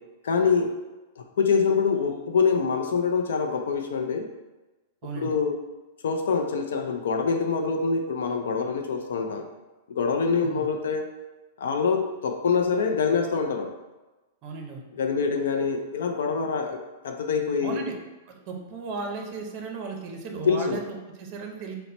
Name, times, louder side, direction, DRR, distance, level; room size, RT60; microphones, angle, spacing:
voice 1, 0.2-0.7 1.2-4.3 5.2-5.6 6.0-9.4 9.9-11.1 11.6-13.7 15.0-17.8 20.5-20.8, left 5 dB, 80° left, 5 dB, 0.4 m, -25 dB
voice 2, 5.0-5.3 10.4-10.7 14.4-14.8 17.6-18.0 18.3-21.7, right 4 dB, 30° right, 2 dB, 0.6 m, -35 dB
4.1 x 2.1 x 4.2 m, 1.1 s
supercardioid pair, 170°, 0 cm